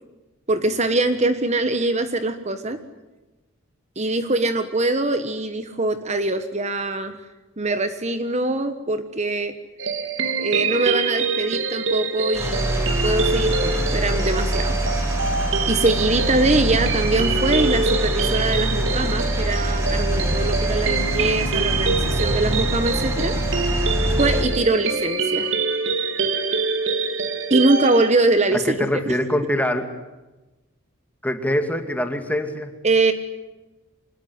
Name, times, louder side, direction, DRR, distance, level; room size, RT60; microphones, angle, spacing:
voice 1, 0.5-2.8 4.0-7.2 7.6-9.5 10.4-14.8 15.7-23.4 24.2-25.5 27.5-28.7 32.8-33.1, right 2 dB, 35° right, 10 dB, 1.4 m, -23 dB
sound 1, 9.8-28.1, right 4 dB, 65° right, 2.8 m, -25 dB
sound 2, 12.3-24.4, equal, 15° right, 6.6 m, -24 dB
voice 2, 28.5-29.9 31.2-32.7, left 1 dB, 5° left, 6 dB, 2.4 m, -24 dB
26.0 x 21.0 x 9.8 m, 1.1 s
head